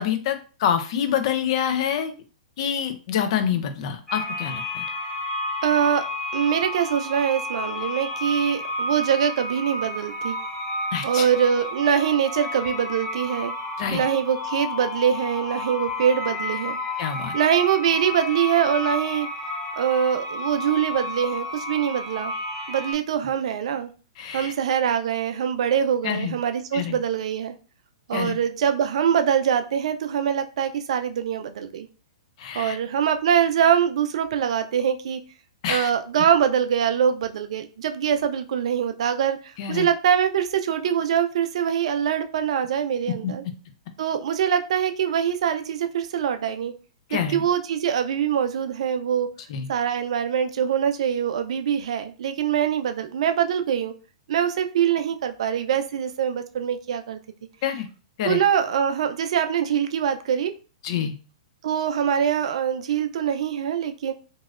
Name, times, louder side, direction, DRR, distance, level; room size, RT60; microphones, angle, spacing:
voice 1, 0.0-2.1 2.6-4.8 10.9-11.3 13.8-14.0 17.0-17.4 24.2-24.5 26.0-26.3 26.7-27.0 28.1-28.4 32.4-32.8 35.6-35.9 39.6-39.9 43.2-43.3 47.1-47.4 49.5-49.7 57.6-57.9 58.2-58.4 60.8-61.1, left 8 dB, 55° left, 8 dB, 0.6 m, -26 dB
sound 1, 4.1-22.9, left 2 dB, 15° left, 0.9 m, -31 dB
voice 2, 5.6-6.0 6.3-10.4 11.0-13.5 13.9-16.8 17.3-19.3 19.8-22.3 22.7-23.9 24.3-27.6 28.1-31.9 32.5-35.2 35.7-43.4 44.0-46.7 47.1-49.3 49.7-53.9 54.3-57.2 58.2-60.5 61.6-64.1, right 8 dB, 70° right, 8 dB, 0.4 m, -23 dB
3.0 x 2.7 x 2.4 m, 0.36 s
hypercardioid pair, 120°, 4 cm